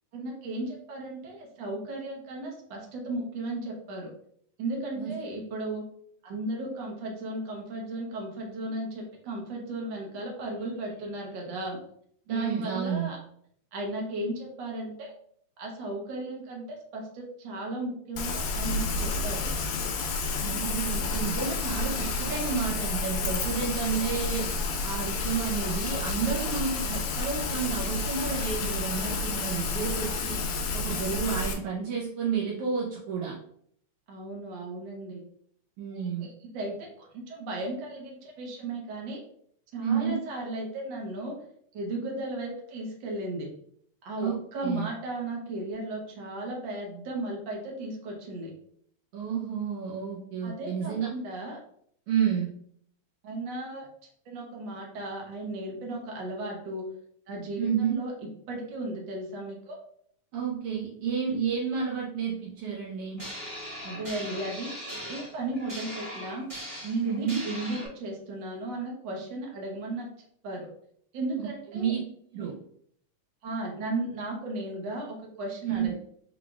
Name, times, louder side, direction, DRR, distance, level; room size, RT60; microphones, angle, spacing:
voice 1, 0.1-4.1 4.6-5.8 6.2-11.8 12.3-13.2 13.7-15.1 15.6-19.5 34.1-35.2 35.9-36.3 36.5-39.2 39.7-41.3 41.7-43.5 44.0-48.5 50.4-51.6 53.2-53.9 54.2-56.8 57.3-58.1 58.5-59.8 63.8-66.4 66.8-70.1 70.4-70.7 71.1-71.9 73.4-75.9, right 2 dB, 60° right, -1 dB, 1.2 m, -35 dB
voice 2, 12.3-13.1 20.4-24.5 24.8-30.4 30.7-33.4 35.8-36.3 39.8-40.2 44.2-44.4 44.6-44.9 49.1-51.1 52.1-52.5 57.6-58.0 60.3-63.2 67.0-67.4 71.4-71.5 71.7-72.0 72.3-72.5 75.7-75.9, right 7 dB, 85° right, -3 dB, 1.2 m, -30 dB
Rain, 18.2-31.5, left 3 dB, 80° left, 1.9 m, -30 dB
sound 1, 63.2-67.9, equal, 30° right, 0.9 m, -40 dB
4.7 x 3.9 x 2.3 m, 0.66 s
omnidirectional pair, 3.5 m